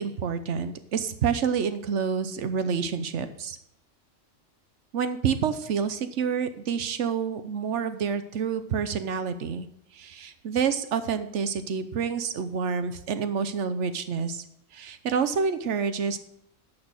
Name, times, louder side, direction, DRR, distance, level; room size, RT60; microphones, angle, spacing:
voice 1, 0.0-3.6 4.9-9.7 9.9-14.4 14.7-16.2, right 6 dB, 70° right, 11 dB, 1.1 m, -28 dB
11.0 x 6.1 x 6.2 m, 0.78 s
omnidirectional pair, 1.3 m